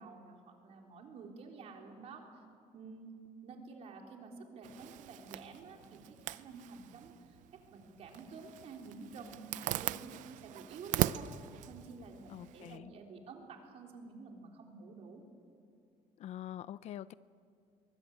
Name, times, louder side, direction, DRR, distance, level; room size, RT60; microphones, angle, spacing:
voice 1, 0.0-2.2 2.7-3.1 3.4-11.3 11.7-15.2, right 4 dB, 55° right, 2 dB, 3.8 m, -50 dB
Zipper (clothing), 4.6-12.8, right 14 dB, 75° right, 0.6 m, -40 dB
voice 2, 12.3-12.9 16.2-17.1, left 11 dB, 60° left, 17 dB, 0.5 m, -45 dB
23.0 x 21.5 x 9.0 m, 2.3 s
cardioid pair, 150°, 13 cm